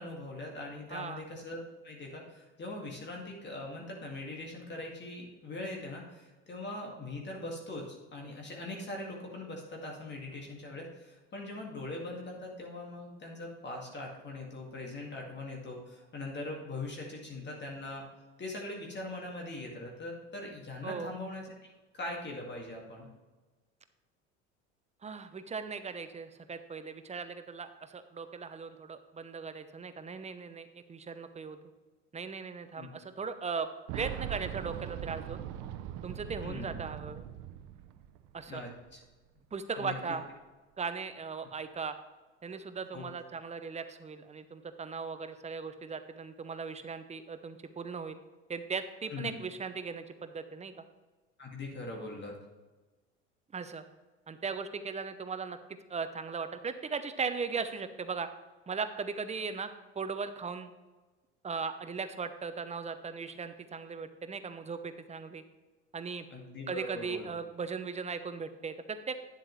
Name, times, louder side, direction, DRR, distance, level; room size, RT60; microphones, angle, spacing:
voice 1, 0.0-18.1 18.4-23.1 32.8-32.9 36.4-36.7 38.5-39.0 39.8-40.2 42.9-43.0 49.1-49.3 51.4-52.4 66.3-67.3, left 2 dB, 30° left, 0 dB, 2.1 m, -41 dB
voice 2, 0.9-1.2 20.8-21.1 25.0-31.6 32.1-33.7 33.9-35.4 36.0-37.2 38.3-38.6 39.5-40.2 40.8-42.0 42.4-48.2 48.5-50.7 53.5-53.8 54.3-55.6 55.9-58.3 58.7-59.7 60.0-60.7 61.4-65.4 65.9-66.2 66.7-69.2, right 5 dB, 20° right, 10 dB, 0.7 m, -38 dB
Boom, 33.9-38.6 38.9-39.0 40.1-40.2, right 11 dB, 55° right, 0.7 m, -41 dB
10.0 x 7.5 x 3.2 m, 1.2 s
hypercardioid pair, 75°, 35 cm